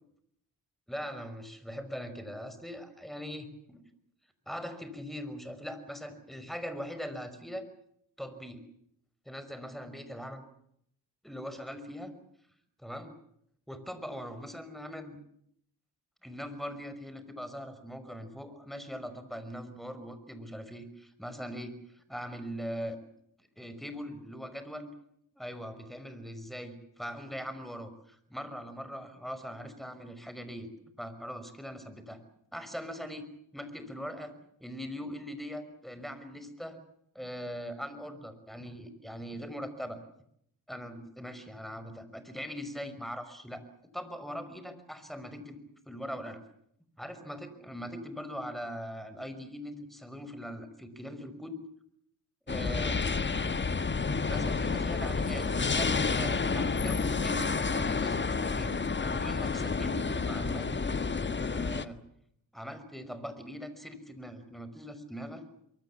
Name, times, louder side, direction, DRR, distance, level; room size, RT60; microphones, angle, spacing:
voice 1, 0.9-3.8 4.5-7.7 8.2-8.6 9.3-10.4 11.2-12.1 12.8-13.1 13.7-15.2 16.2-23.0 23.6-24.9 25.4-30.7 31.0-32.2 32.5-33.2 33.5-34.4 34.6-36.8 37.1-40.0 40.7-43.6 43.9-45.6 45.9-46.4 47.0-51.6 52.5-53.0 54.3-55.5 55.7-58.7 59.0-62.0 62.5-65.4, equal, ahead, 11 dB, 5.7 m, -41 dB
sound 1, 52.5-61.8, left 4 dB, 20° left, 1.5 m, -30 dB
24.0 x 23.5 x 7.4 m, 0.70 s
hypercardioid pair, 45°, 49 cm